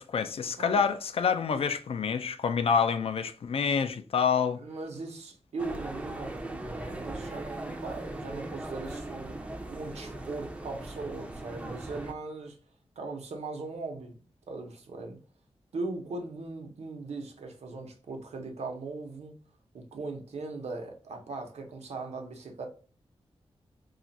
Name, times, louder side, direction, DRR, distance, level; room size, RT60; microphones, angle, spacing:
voice 1, 0.0-4.6, left 6 dB, 60° left, 0.4 m, -27 dB
voice 2, 4.6-9.4 9.7-12.6 13.0-15.2 15.7-19.3 19.7-22.7, right 3 dB, 90° right, 0.7 m, -39 dB
sound 1, 5.6-12.1, right 1 dB, 10° right, 0.4 m, -39 dB
2.5 x 2.4 x 4.0 m
wide cardioid pair, 145°, 11 cm